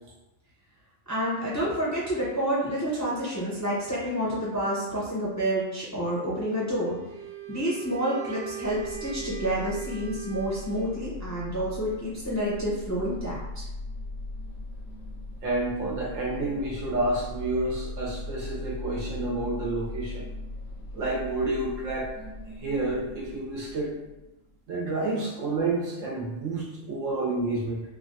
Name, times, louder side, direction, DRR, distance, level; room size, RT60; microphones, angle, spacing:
voice 1, 1.1-7.0 7.5-13.7, equal, 20° left, -8 dB, 0.5 m, -29 dB
Wind instrument woodwind instrument, 6.8-11.1, right 9 dB, 65° right, 0.5 m, -40 dB
sound 1, 8.6-24.5, left 2 dB, 80° left, 1.0 m, -39 dB
voice 2, 15.4-20.3 20.9-22.2 22.6-24.0 24.7-27.8, right 2 dB, 80° right, -4 dB, 1.2 m, -29 dB
3.2 x 2.3 x 2.6 m, 0.96 s
omnidirectional pair, 1.3 m